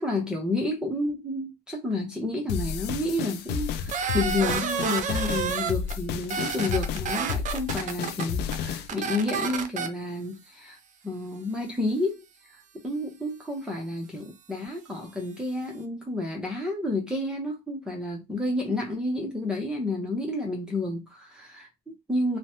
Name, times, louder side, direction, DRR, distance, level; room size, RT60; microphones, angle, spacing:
voice 1, 0.0-10.8 11.0-12.2 12.8-22.4, left 2 dB, 5° right, 0.8 m, -30 dB
sound 1, 2.5-8.9, left 7 dB, 80° left, 0.4 m, -32 dB
sound 2, 3.9-5.9 6.2-8.2 8.5-8.6 8.9-9.9, right 6 dB, 50° right, 0.5 m, -29 dB
3.1 x 2.1 x 2.8 m
cardioid pair, 110°, 17 cm